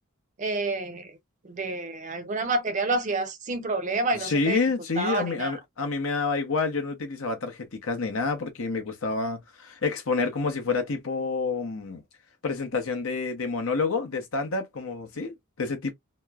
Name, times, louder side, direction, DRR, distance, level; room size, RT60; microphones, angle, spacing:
voice 1, 0.4-1.1 1.4-4.6 5.0-5.5, right 2 dB, 35° right, 0.5 m, -28 dB
voice 2, 4.2-12.0 12.4-15.9, left 4 dB, 70° left, 0.8 m, -28 dB
2.9 x 2.0 x 2.2 m
head